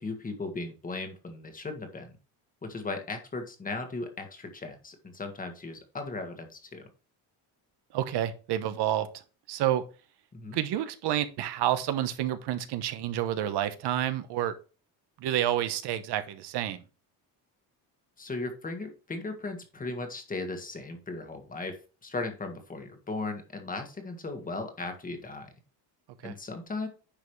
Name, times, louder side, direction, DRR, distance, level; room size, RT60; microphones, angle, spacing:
voice 1, 0.0-2.2 2.6-6.8 10.3-10.6 18.2-21.8 22.0-25.5 26.2-26.9, left 3 dB, 20° left, 5 dB, 1.7 m, -37 dB
voice 2, 7.9-9.1 9.5-9.8 10.5-14.5 15.2-16.8 26.2-26.3, right 12 dB, 65° right, 11 dB, 1.1 m, -29 dB
10.0 x 5.5 x 3.2 m, 0.34 s
cardioid pair, 155°, 43 cm